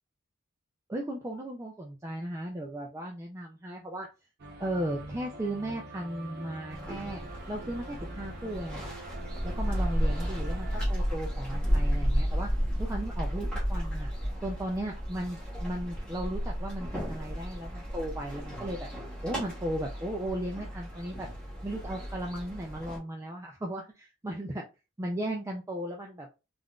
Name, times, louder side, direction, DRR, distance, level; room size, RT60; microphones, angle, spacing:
voice 1, 0.9-4.1 4.6-7.2 7.5-9.0 9.4-12.5 12.8-14.1 14.4-18.9 19.2-21.3 21.6-24.6 25.0-26.3, right 1 dB, 15° right, 0 dB, 0.3 m, -36 dB
sound 1, 4.4-10.9, right 2 dB, 50° right, 0.7 m, -45 dB
sound 2, 6.7-23.0, equal, 5° left, 0.9 m, -33 dB
3.5 x 2.4 x 2.3 m, 0.29 s
head